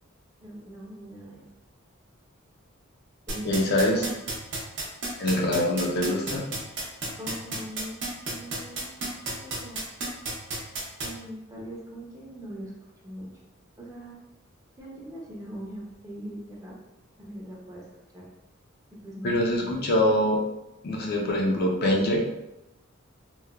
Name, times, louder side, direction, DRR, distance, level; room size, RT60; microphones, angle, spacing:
voice 1, 0.4-1.4 3.3-4.0 7.2-8.0 8.2-8.9 9.3-9.8 11.0-12.7 13.0-13.3 13.8-14.1 14.8-16.7 17.2-18.3 19.0-19.9, equal, 15° right, -4 dB, 0.5 m, -41 dB
sound 1, 3.3-11.1, right 3 dB, 60° right, 0.7 m, -31 dB
voice 2, 3.4-4.1 5.2-6.5 19.2-20.4 20.8-22.2, left 1 dB, 50° left, -1 dB, 0.4 m, -24 dB
3.0 x 2.1 x 2.3 m, 0.91 s
head